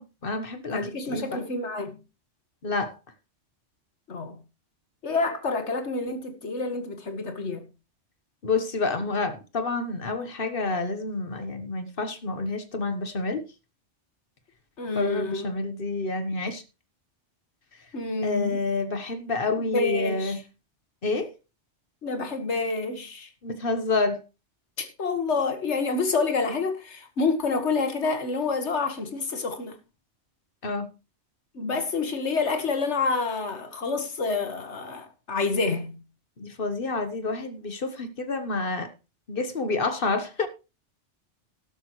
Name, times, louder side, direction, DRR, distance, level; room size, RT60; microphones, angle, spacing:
voice 1, 0.0-1.4 2.6-2.9 8.4-13.4 14.9-16.6 18.2-20.4 21.0-21.3 23.4-24.2 30.6-30.9 36.4-38.9 39.3-40.5, left 3 dB, 50° left, 1.3 m, -28 dB
voice 2, 0.7-2.0 4.1-4.4 5.0-7.7 14.8-15.5 17.9-18.6 19.7-20.4 22.0-23.3 24.8-29.8 31.5-36.0, left 4 dB, 70° left, 1.9 m, -28 dB
12.5 x 12.0 x 3.1 m
omnidirectional pair, 1.2 m